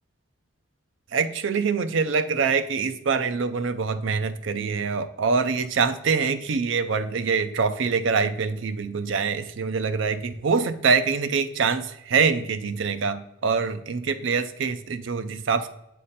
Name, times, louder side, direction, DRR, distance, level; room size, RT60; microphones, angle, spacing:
voice 1, 1.1-15.7, right 5 dB, 65° right, 10 dB, 0.5 m, -24 dB
7.5 x 3.7 x 4.1 m, 0.81 s
head